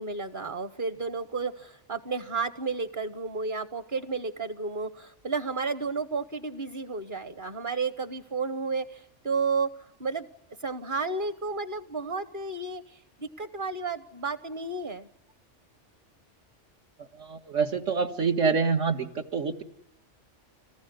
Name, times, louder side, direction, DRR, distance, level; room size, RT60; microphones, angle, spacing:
voice 1, 0.0-10.3 10.6-15.1, right 4 dB, 45° right, 12 dB, 1.2 m, -32 dB
voice 2, 17.0-19.6, right 5 dB, 80° right, 5 dB, 2.1 m, -27 dB
26.5 x 19.5 x 9.5 m, 0.83 s
omnidirectional pair, 1.3 m